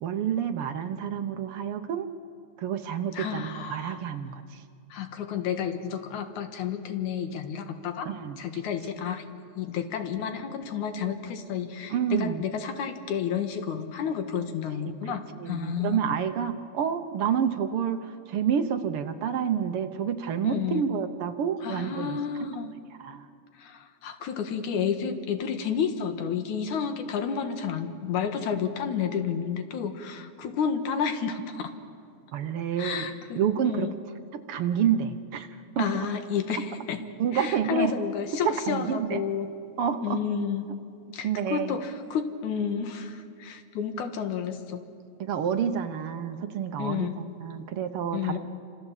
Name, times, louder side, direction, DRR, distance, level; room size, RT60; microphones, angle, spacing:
voice 1, 0.0-2.1 2.6-4.6 8.0-8.4 11.9-12.4 15.4-22.2 23.0-23.2 32.3-33.1 33.3-33.9 34.3-35.5 35.8-35.9 37.2-37.9 38.4-39.2 39.8-40.2 41.2-41.8 45.2-48.4, right 8 dB, 65° right, 8 dB, 1.5 m, -28 dB
voice 2, 3.1-4.0 4.9-9.2 9.6-16.1 20.4-20.8 21.6-22.7 23.6-31.7 32.8-34.0 35.8-37.0 37.3-39.5 40.0-40.7 41.1-44.8 46.8-47.2 48.1-48.4, left 7 dB, 80° left, 7 dB, 3.0 m, -31 dB
28.5 x 27.0 x 7.4 m, 2.4 s
omnidirectional pair, 3.4 m